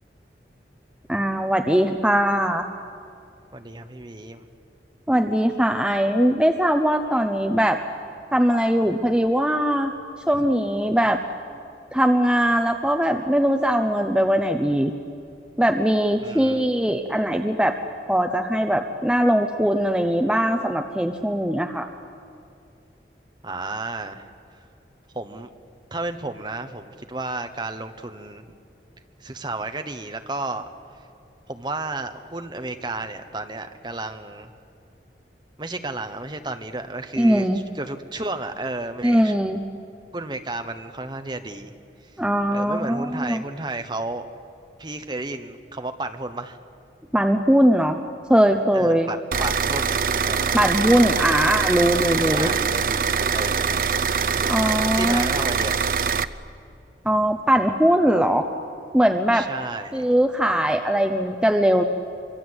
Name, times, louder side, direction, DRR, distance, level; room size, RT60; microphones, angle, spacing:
voice 1, 1.1-2.7 5.1-7.8 8.3-9.9 10.3-11.2 11.9-14.9 15.6-17.8 18.1-21.9 37.2-37.6 39.0-39.6 42.2-43.4 47.1-48.0 48.3-49.1 50.5-52.5 54.4-55.3 57.0-58.5 58.9-59.5 59.9-61.8, equal, 5° right, 4 dB, 0.7 m, -20 dB
voice 2, 3.5-4.5 16.2-16.8 23.4-24.3 25.1-25.5 25.9-28.4 29.2-30.7 31.5-34.5 35.6-37.5 37.7-39.4 40.1-41.8 42.5-44.3 44.8-46.6 48.7-50.0 50.2-50.6 52.3-53.9 54.9-55.7 59.3-60.1, right 2 dB, 25° right, 7 dB, 1.1 m, -32 dB
sound 1, 49.3-56.2, right 6 dB, 50° right, 0.6 m, -23 dB
25.0 x 24.5 x 8.0 m, 2.6 s
head